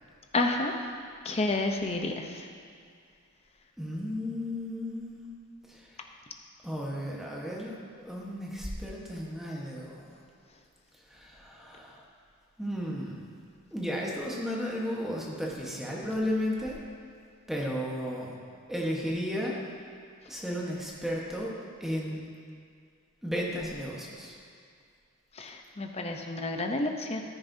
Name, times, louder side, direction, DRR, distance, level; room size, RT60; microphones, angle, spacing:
voice 1, 0.3-0.8 1.2-2.5 25.4-27.2, left 2 dB, 30° left, 4 dB, 0.7 m, -30 dB
voice 2, 3.8-5.4 5.7-6.1 6.6-10.2 11.1-12.0 12.6-13.3 13.7-16.8 17.5-18.3 18.7-19.6 20.3-22.2 23.2-24.4, equal, ahead, -3 dB, 1.2 m, -34 dB
14.0 x 9.9 x 2.7 m, 2.2 s
head